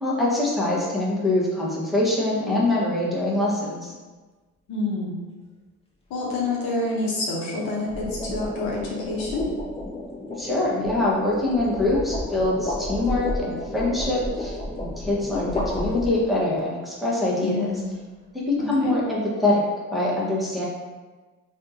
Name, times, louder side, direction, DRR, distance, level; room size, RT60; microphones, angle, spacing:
voice 1, 0.0-3.9 10.4-17.7 18.3-19.6 19.9-20.6, left 2 dB, ahead, -6 dB, 1.1 m, -24 dB
sound 1, 2.2-2.5 7.6-16.5, left 1 dB, 15° left, 0.7 m, -32 dB
voice 2, 4.7-5.1 6.1-9.5 17.4-17.9 18.6-18.9, left 2 dB, 70° left, -4 dB, 0.9 m, -27 dB
3.4 x 2.5 x 2.7 m, 1.3 s
hypercardioid pair, 50°, 38 cm